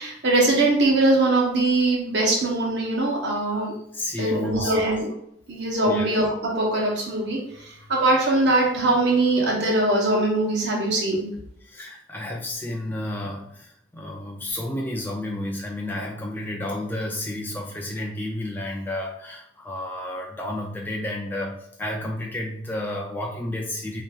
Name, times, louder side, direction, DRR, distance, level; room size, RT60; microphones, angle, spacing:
voice 1, 0.0-3.7 4.2-5.1 5.5-11.3, right 2 dB, 65° right, -2 dB, 1.1 m, -22 dB
voice 2, 3.9-4.9 5.8-6.1 11.6-24.0, left 1 dB, 10° left, -1 dB, 0.4 m, -31 dB
5.2 x 2.8 x 2.4 m, 0.74 s
head